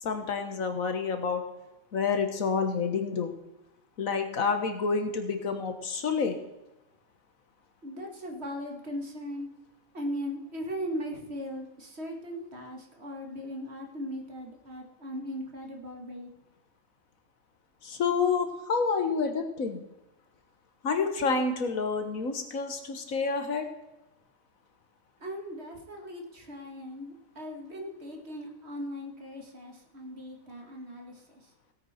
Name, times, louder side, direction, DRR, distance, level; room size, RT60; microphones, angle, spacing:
voice 1, 0.0-1.4 1.9-3.3 4.0-6.4 17.8-19.8 20.8-23.7, left 5 dB, 85° left, 6 dB, 1.8 m, -28 dB
voice 2, 7.8-9.5 9.9-16.3 25.2-31.2, equal, 50° right, 2 dB, 2.2 m, -38 dB
17.0 x 8.9 x 4.4 m, 0.98 s
omnidirectional pair, 1.4 m